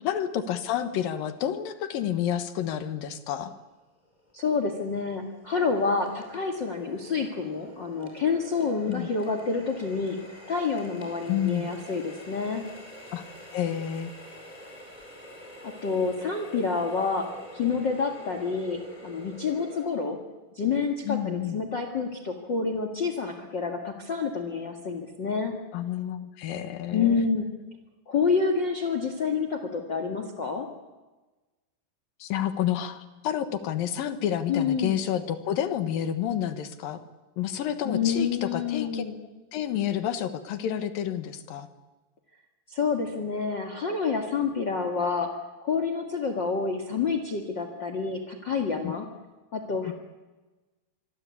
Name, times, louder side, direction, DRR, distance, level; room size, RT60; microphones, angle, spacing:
voice 1, 0.0-3.5 8.9-9.1 11.3-11.7 13.1-13.3 13.5-14.1 21.1-21.6 25.7-27.3 32.2-37.0 37.4-39.0 39.5-41.7 48.8-48.9 49.8-49.9, left 10 dB, 75° left, 10 dB, 3.0 m, -29 dB
Water tap faucet, 4.0-19.8, equal, 10° left, 5.1 m, -47 dB
voice 2, 4.3-10.2 10.5-12.6 15.6-17.3 17.5-20.2 20.6-25.5 26.9-27.4 28.1-30.7 34.5-35.0 37.8-39.1 42.7-45.3 45.6-49.1 49.5-49.9, left 5 dB, 40° left, 6 dB, 2.1 m, -28 dB
26.0 x 23.5 x 8.5 m, 1.2 s
omnidirectional pair, 4.1 m